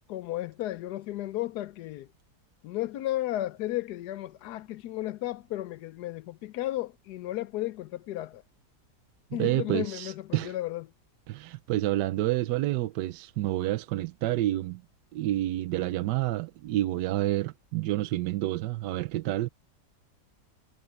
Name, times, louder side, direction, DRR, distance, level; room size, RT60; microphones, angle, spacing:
voice 1, 0.1-2.1 2.6-8.4 9.3-10.8, left 15 dB, 75° left, 1.2 m, -34 dB
voice 2, 9.3-10.6 11.3-14.8 15.1-19.5, right 15 dB, 80° right, 1.2 m, -29 dB
omnidirectional pair, 1.8 m